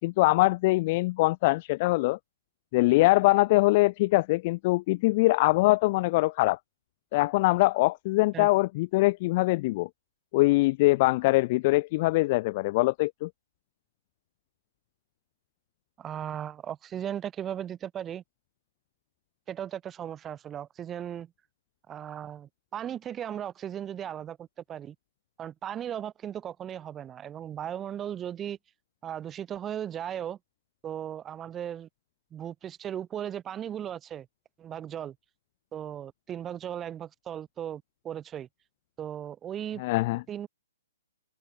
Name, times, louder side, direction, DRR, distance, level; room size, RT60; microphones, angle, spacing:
voice 1, 0.0-2.2 2.7-6.6 7.1-9.9 10.3-13.3 39.8-40.2, left 21 dB, 35° left, 0.5 m, -23 dB
voice 2, 16.0-18.2 19.5-21.3 21.9-24.9 25.4-28.6 29.0-30.4 30.8-31.9 32.3-34.3 34.6-35.1 35.7-38.5 39.0-39.8 40.3-40.5, right 10 dB, 15° right, 3.0 m, -37 dB
hypercardioid pair, 160°, 0 cm